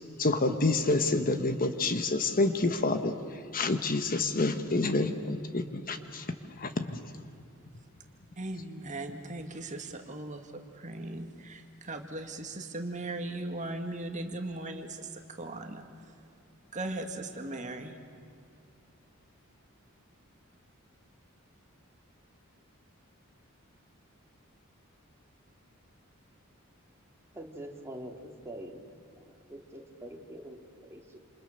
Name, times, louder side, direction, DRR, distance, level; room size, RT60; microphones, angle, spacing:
voice 1, 0.2-3.1 3.5-6.3 6.6-7.0, left 2 dB, 40° left, 8 dB, 1.2 m, -28 dB
voice 2, 8.4-15.9 16.7-18.0, right 2 dB, 35° right, 5 dB, 2.0 m, -38 dB
voice 3, 27.3-28.8 29.2-31.2, right 1 dB, 10° right, 1 dB, 2.8 m, -45 dB
28.5 x 28.0 x 6.7 m, 2.5 s
head